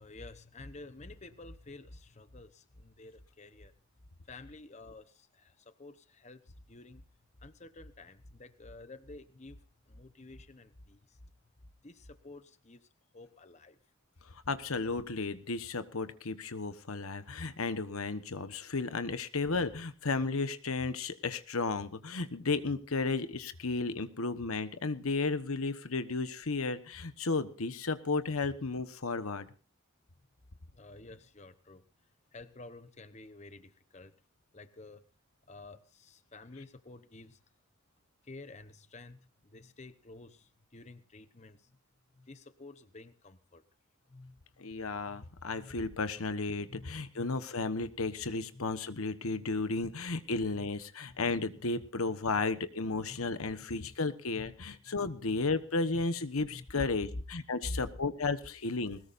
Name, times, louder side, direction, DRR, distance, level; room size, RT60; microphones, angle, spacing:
voice 1, 0.0-3.7 4.2-11.5 11.8-12.9 13.1-13.8 30.7-31.8 32.3-34.1 34.5-35.0 35.5-37.4 38.2-41.8 42.1-43.6 44.1-45.8 46.2-46.3 46.7-47.5 48.5-48.7 49.3-49.4 49.8-50.0 50.5-50.7 51.1-51.2 53.1-53.3 53.7-53.9 54.3-55.4 56.5-56.6 57.1-57.2 57.6-57.8, left 2 dB, 30° left, 11 dB, 0.9 m, -50 dB
voice 2, 14.2-29.5 44.6-59.0, left 3 dB, 85° left, 11 dB, 1.2 m, -33 dB
21.0 x 19.0 x 2.6 m, 0.34 s
head